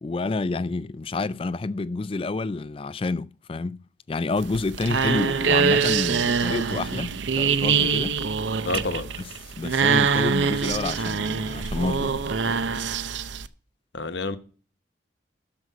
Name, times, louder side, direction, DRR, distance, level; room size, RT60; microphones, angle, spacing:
voice 1, 0.0-8.2 9.2-9.3 9.6-12.3, left 3 dB, 30° left, 0.3 m, -29 dB
sound 1, 4.4-13.5, right 5 dB, 70° right, 0.6 m, -24 dB
voice 2, 8.6-9.1 13.9-14.4, left 3 dB, 65° left, 1.0 m, -28 dB
12.5 x 5.3 x 4.6 m
head